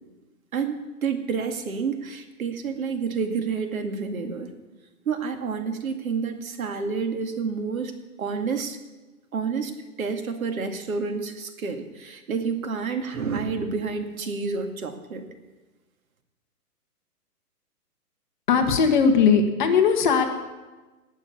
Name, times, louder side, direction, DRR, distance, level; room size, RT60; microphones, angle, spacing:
voice 1, 0.5-4.5 5.1-7.9 8.2-8.8 9.3-9.7 10.0-15.3, right 5 dB, 60° right, 6 dB, 2.3 m, -29 dB
voice 2, 18.5-20.3, left 6 dB, 30° left, 5 dB, 1.4 m, -19 dB
18.5 x 7.2 x 8.4 m, 1.2 s
hypercardioid pair, 165°, 47 cm